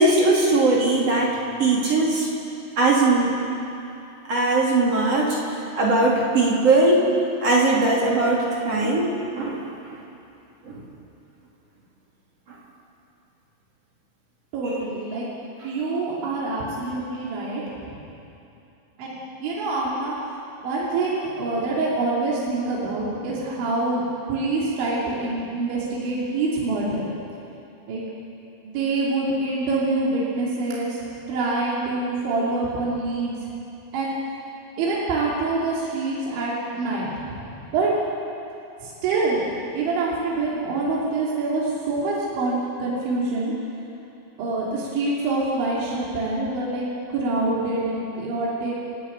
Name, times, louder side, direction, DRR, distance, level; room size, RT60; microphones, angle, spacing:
voice 1, 0.0-2.3 2.8-3.4 4.3-5.4 5.7-7.1 7.4-9.7 10.7-10.8, right 2 dB, 35° right, -3 dB, 3.2 m, -20 dB
voice 2, 14.5-15.3 15.6-17.6 19.0-19.2 19.4-20.1 20.6-24.0 24.3-27.0 27.9-28.0 28.6-31.0 31.3-33.3 33.9-34.1 34.8-37.5 37.7-37.9 38.8-43.5 44.4-46.8 47.1-48.7, right 3 dB, 70° right, -6 dB, 5.1 m, -25 dB
30.0 x 11.5 x 8.8 m, 2.8 s
omnidirectional pair, 5.6 m